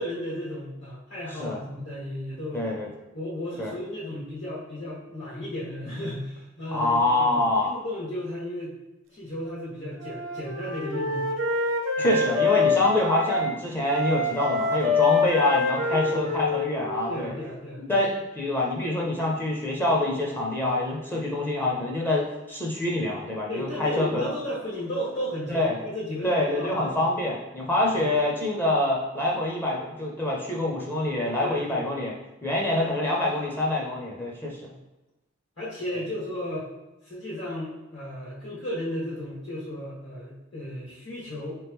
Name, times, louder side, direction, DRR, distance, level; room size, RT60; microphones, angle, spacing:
voice 1, 0.0-2.7 3.1-8.7 9.1-11.3 12.0-12.1 15.9-16.3 17.1-18.0 23.5-27.0 27.9-28.0 31.4-31.9 35.6-36.7 37.0-41.6, left 1 dB, 70° left, -8 dB, 1.4 m, -34 dB
voice 2, 2.5-2.9 3.6-3.7 6.7-7.7 12.0-17.3 17.8-24.3 25.5-25.8 26.2-32.1 32.4-34.7, left 1 dB, 10° left, -2 dB, 0.5 m, -26 dB
Wind instrument woodwind instrument, 10.0-13.5 13.9-17.6, left 3 dB, 75° right, 0.6 m, -26 dB
3.6 x 2.9 x 3.4 m, 1.0 s
head